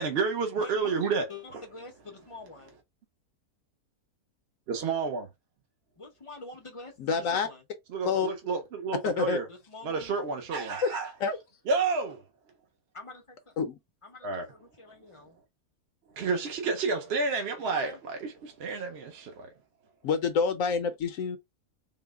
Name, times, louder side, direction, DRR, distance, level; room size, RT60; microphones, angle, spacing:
voice 1, 0.0-1.3 4.7-5.3 7.9-9.5 9.8-11.1 11.7-12.2 14.2-14.5 16.1-19.5, right 4 dB, 55° right, 0.7 m, -30 dB
voice 2, 0.6-1.0 1.3-2.8 6.0-7.6 9.5-10.1 12.9-13.6 14.0-15.4 17.6-18.0, left 3 dB, 40° left, 0.4 m, -46 dB
voice 3, 7.0-7.5 8.0-8.3 9.0-9.4 10.9-11.4 13.6-13.7 20.0-21.4, left 5 dB, 70° left, 0.9 m, -28 dB
3.8 x 2.1 x 3.4 m
omnidirectional pair, 1.6 m